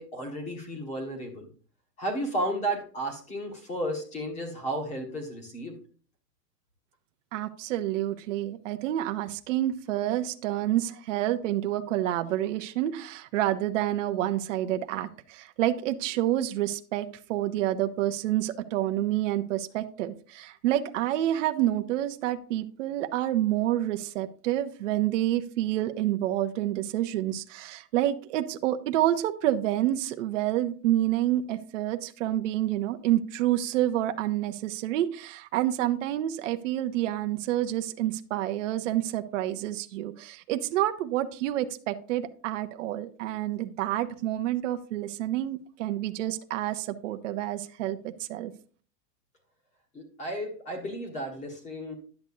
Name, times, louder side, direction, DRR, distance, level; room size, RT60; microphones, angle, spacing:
voice 1, 0.0-1.5 2.0-5.7 49.9-51.9, right 1 dB, 15° left, 2 dB, 1.6 m, -33 dB
voice 2, 7.3-48.5, right 13 dB, 50° right, 7 dB, 0.7 m, -28 dB
10.5 x 7.9 x 2.7 m, 0.42 s
supercardioid pair, 175°, 48 cm